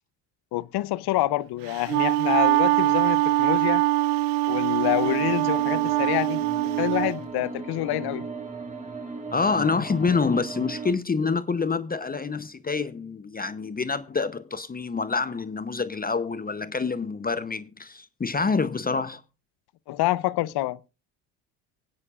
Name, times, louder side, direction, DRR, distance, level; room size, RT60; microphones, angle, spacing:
voice 1, 0.5-3.8 4.5-6.4 6.8-8.3 19.9-20.9, left 16 dB, 60° left, 0.7 m, -27 dB
Wind instrument woodwind instrument, 1.7-7.1, right 15 dB, 90° right, 0.9 m, -23 dB
sound 1, 4.8-10.9, right 4 dB, 15° right, 4.6 m, -37 dB
voice 2, 9.3-19.2, left 4 dB, 20° left, 0.8 m, -27 dB
25.0 x 9.6 x 2.4 m
supercardioid pair, 75°, 44 cm